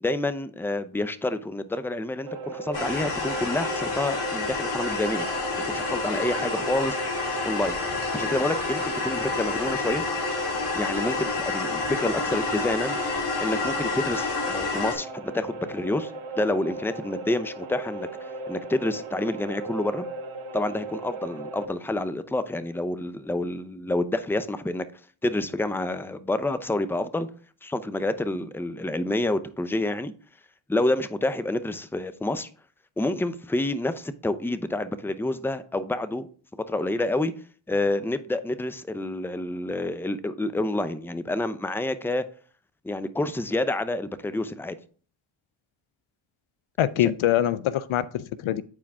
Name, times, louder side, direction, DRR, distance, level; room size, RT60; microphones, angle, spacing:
voice 1, 0.0-5.3 5.7-7.0 7.4-7.8 8.1-10.0 10.7-13.0 13.4-16.1 16.4-20.1 20.5-24.8 25.2-27.3 27.6-30.1 30.7-32.5 33.0-36.3 36.7-37.3 37.7-42.2 42.8-44.8 47.0-47.1, left 2 dB, 5° left, 0.6 m, -28 dB
sound 1, 2.3-21.6, right 2 dB, 80° right, 1.3 m, -37 dB
sound 2, 2.7-14.9, left 3 dB, 55° left, 3.4 m, -29 dB
voice 2, 46.8-48.6, left 11 dB, 75° left, 0.6 m, -24 dB
8.8 x 4.8 x 3.6 m
cardioid pair, 55°, 49 cm